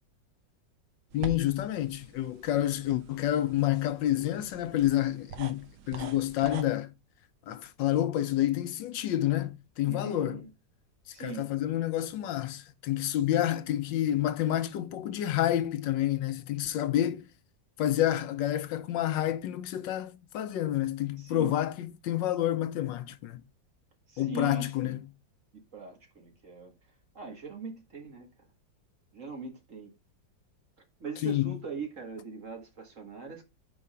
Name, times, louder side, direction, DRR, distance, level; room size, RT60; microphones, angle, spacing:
voice 1, 1.1-6.9 7.5-10.4 11.2-17.2 17.8-23.4 24.2-25.0 31.2-31.5, left 12 dB, 85° left, 1.4 m, -29 dB
sound 1, 1.1-6.6, right 5 dB, 85° right, 1.6 m, -45 dB
voice 2, 9.8-10.5 11.1-11.5 21.2-21.5 24.1-25.0 25.5-26.7 27.2-28.3 29.1-29.9 31.0-33.4, right 4 dB, 45° right, 1.9 m, -41 dB
5.0 x 4.8 x 5.5 m
omnidirectional pair, 1.9 m